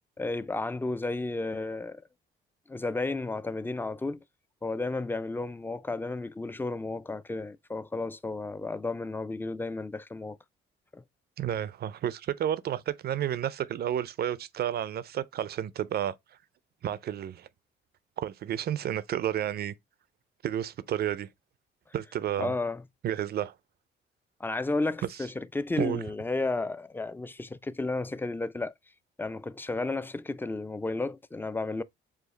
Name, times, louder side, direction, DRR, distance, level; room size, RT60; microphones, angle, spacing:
voice 1, 0.2-2.0 2.7-4.2 4.6-10.4 10.9-11.0 22.4-22.8 24.4-28.7 29.2-31.8, left 2 dB, 10° left, 0.3 m, -32 dB
voice 2, 11.4-16.2 16.8-17.5 18.2-19.8 20.4-21.3 21.9-22.5 23.0-23.5 25.8-26.0, right 10 dB, 55° right, 0.4 m, -31 dB
4.9 x 2.4 x 3.9 m
cardioid pair, 90°, 20 cm